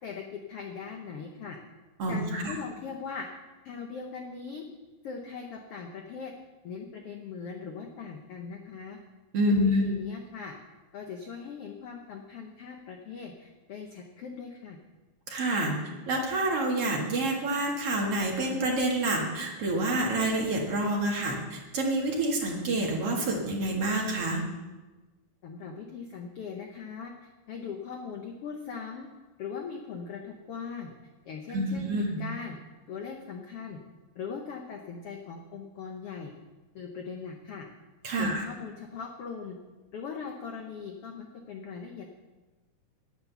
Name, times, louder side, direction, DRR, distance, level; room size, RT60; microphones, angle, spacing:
voice 1, 0.0-1.6 2.1-3.3 3.6-4.6 5.0-6.3 6.6-9.0 9.5-10.5 10.9-14.8 25.4-27.1 27.5-29.1 29.4-30.9 31.2-32.6 32.9-33.8 34.1-36.3 36.7-37.7 38.2-39.6 39.9-42.2, left 5 dB, 75° left, 2 dB, 1.3 m, -40 dB
voice 2, 2.0-2.6 9.3-9.8 15.3-24.4 31.5-32.2 38.0-38.4, right 1 dB, 50° right, -1 dB, 2.5 m, -28 dB
9.9 x 9.8 x 7.0 m, 1.2 s
omnidirectional pair, 3.9 m